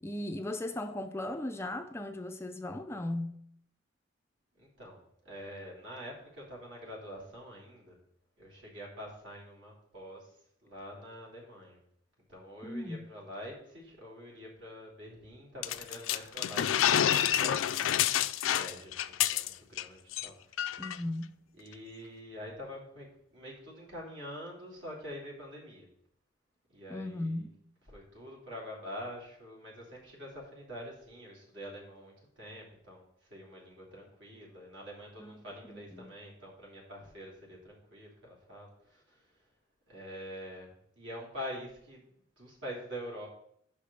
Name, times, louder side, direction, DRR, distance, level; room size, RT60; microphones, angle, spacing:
voice 1, 0.0-3.4 12.6-13.0 20.8-21.3 26.9-27.5 35.2-35.4 35.7-36.1, left 1 dB, 15° left, 0.4 m, -37 dB
voice 2, 4.6-8.0 8.4-11.8 12.3-17.9 18.4-20.8 21.5-25.9 26.7-27.5 27.9-39.5 39.9-42.1 42.4-43.3, equal, 65° right, 3.0 m, -46 dB
sound 1, 15.6-19.8 20.1-20.3 20.6-21.0, left 10 dB, 90° left, 0.4 m, -28 dB
5.8 x 5.1 x 6.7 m
head